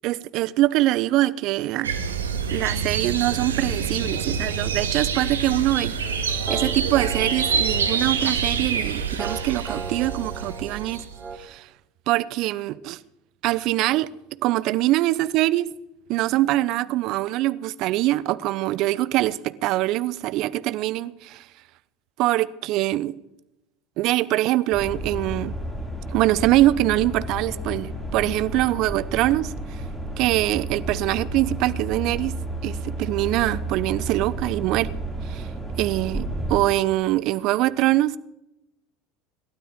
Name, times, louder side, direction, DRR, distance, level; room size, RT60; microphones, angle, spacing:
voice 1, 0.0-1.9 2.5-11.0 11.4-11.7 12.1-13.0 13.4-14.1 14.4-15.7 16.1-21.4 22.2-23.1 24.0-25.5 26.1-29.8 30.2-32.3 32.6-34.9 35.2-35.5 35.8-38.2, right 16 dB, 55° right, 0.8 m, -23 dB
sound 1, 1.8-11.2, right 6 dB, 85° right, 1.6 m, -27 dB
sound 2, 6.0-11.4, right 4 dB, 25° right, 2.4 m, -37 dB
sound 3, 24.7-36.6, right 1 dB, 10° left, 5.5 m, -32 dB
28.0 x 12.5 x 3.7 m
hypercardioid pair, 75°, 0 cm